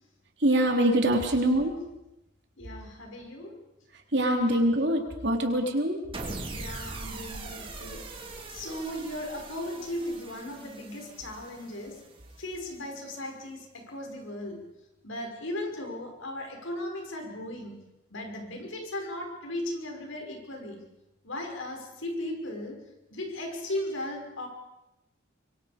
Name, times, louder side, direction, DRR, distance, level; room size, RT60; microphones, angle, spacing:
voice 1, 0.4-1.7 4.1-6.0, right 1 dB, 55° right, 2 dB, 3.5 m, -24 dB
voice 2, 2.6-3.5 4.5-4.6 6.5-8.0 8.5-12.0 12.4-14.6 15.0-17.8 18.1-20.8 21.2-22.8 23.1-24.5, left 1 dB, 80° left, 2 dB, 6.0 m, -37 dB
sound 1, 6.1-12.5, right 2 dB, 25° right, 2.8 m, -41 dB
25.0 x 24.0 x 5.3 m, 0.93 s
head